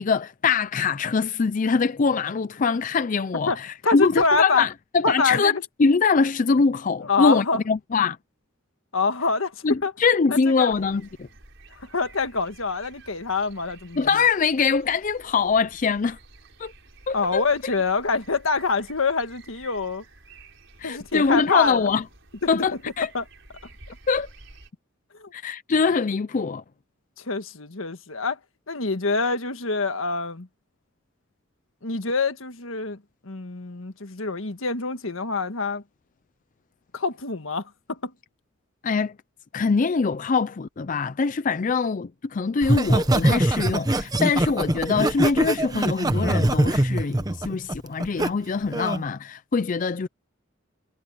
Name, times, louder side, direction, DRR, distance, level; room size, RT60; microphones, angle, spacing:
voice 1, 0.0-5.5 5.8-8.2 9.6-11.3 14.0-16.2 16.6-16.7 17.1-17.7 20.8-22.0 22.5-23.1 24.1-24.3 25.3-26.6 38.8-39.1 39.5-50.1, left 5 dB, 40° left, 0.4 m, -23 dB
voice 2, 3.8-4.7 5.0-5.6 7.0-7.6 8.9-9.9 10.3-10.7 11.8-14.2 17.1-20.0 20.8-21.9 22.5-22.6 23.1-23.2 25.2-25.3 27.2-28.4 28.7-30.5 31.8-35.8 36.9-38.1, left 4 dB, 80° left, 1.6 m, -26 dB
sound 1, 10.7-24.7, right 3 dB, 65° right, 6.3 m, -51 dB
Laughter, 42.6-48.3 48.7-49.0, right 1 dB, 20° right, 1.0 m, -22 dB
head